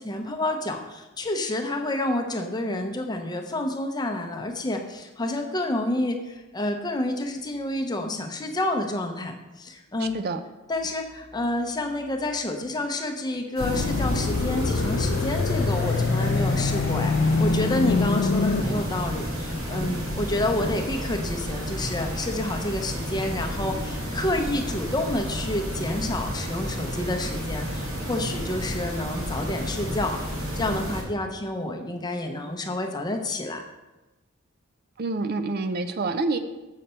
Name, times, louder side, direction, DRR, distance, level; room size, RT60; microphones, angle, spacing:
voice 1, 0.0-10.2 10.7-33.6, left 1 dB, 20° left, 4 dB, 0.7 m, -29 dB
voice 2, 10.0-10.4 35.0-36.4, right 3 dB, 50° right, 8 dB, 0.4 m, -27 dB
sound 1, 13.6-18.6, left 4 dB, 55° left, 0.4 m, -25 dB
sound 2, 13.6-31.0, equal, 85° right, 2.0 m, -31 dB
6.7 x 6.5 x 4.3 m, 1.1 s
head